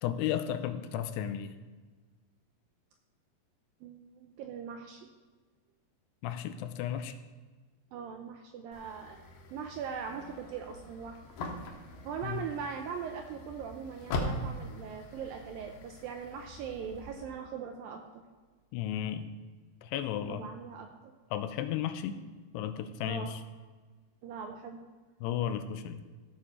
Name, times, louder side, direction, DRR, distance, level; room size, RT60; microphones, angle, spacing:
voice 1, 0.0-1.6 6.2-7.1 12.2-12.4 18.7-19.3 19.8-20.4 21.3-22.2 22.5-23.4 25.2-26.0, left 10 dB, 85° left, 10 dB, 2.7 m, -34 dB
voice 2, 3.8-5.1 7.9-11.3 12.0-18.2 20.3-21.1 23.1-23.3 24.2-24.8, right 7 dB, 80° right, 4 dB, 2.1 m, -41 dB
sound 1, 8.7-17.2, left 1 dB, 70° left, 2.8 m, -41 dB
15.5 x 6.7 x 4.2 m, 1.3 s
omnidirectional pair, 4.8 m